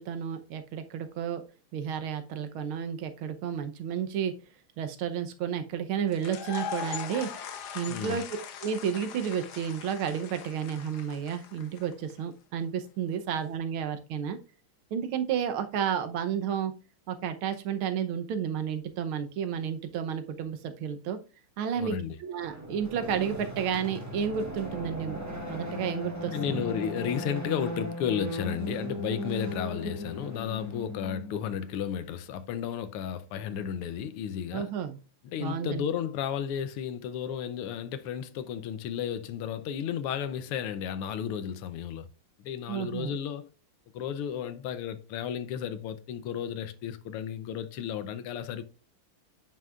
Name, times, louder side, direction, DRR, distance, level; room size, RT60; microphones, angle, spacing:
voice 1, 0.0-1.4 1.7-4.3 4.8-7.3 7.7-8.2 8.6-14.4 14.9-16.7 17.1-21.2 21.6-25.2 25.5-26.6 34.5-35.0 35.4-35.8 42.7-43.1, right 8 dB, 75° right, 1.7 m, -31 dB
sound 1, 6.1-12.1, left 8 dB, 60° left, 1.1 m, -40 dB
voice 2, 7.9-8.2 21.8-22.2 26.3-34.7 35.2-42.1 42.4-43.5 43.9-48.6, left 8 dB, 85° left, 1.6 m, -33 dB
sound 2, 22.4-31.6, equal, 10° right, 1.0 m, -37 dB
9.4 x 5.7 x 2.4 m
omnidirectional pair, 2.4 m